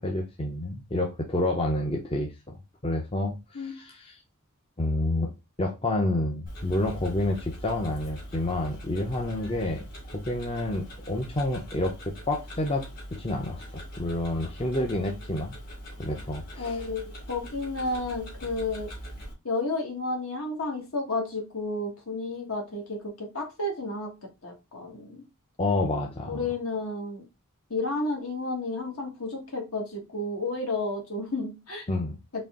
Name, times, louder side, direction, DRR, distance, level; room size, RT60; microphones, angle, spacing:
voice 1, 0.0-4.1 4.8-5.3 5.6-9.8 10.1-12.8 13.1-15.5 16.0-16.8 25.6-26.4 31.9-32.2, left 1 dB, 25° left, 1 dB, 0.6 m, -29 dB
Tick-tock, 6.5-19.3, equal, 45° left, 2.0 m, -42 dB
voice 2, 16.6-18.9 19.4-24.1 24.4-25.2 26.3-27.2 27.7-31.8, left 2 dB, 65° left, 1 dB, 1.6 m, -31 dB
4.2 x 3.2 x 3.6 m, 0.25 s
head